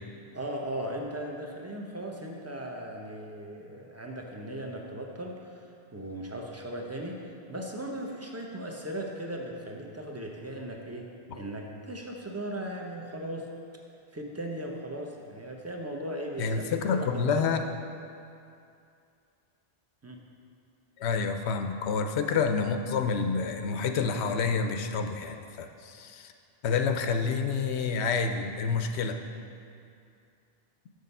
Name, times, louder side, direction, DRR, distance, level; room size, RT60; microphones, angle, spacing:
voice 1, 0.3-7.2 7.5-11.1 11.3-13.5 14.1-17.4 20.0-20.2, right 1 dB, 15° right, 0 dB, 0.6 m, -37 dB
voice 2, 16.4-17.6 21.0-26.3 26.6-29.2, left 5 dB, 90° left, 6 dB, 0.9 m, -28 dB
6.7 x 6.4 x 5.4 m, 2.5 s
omnidirectional pair, 1.1 m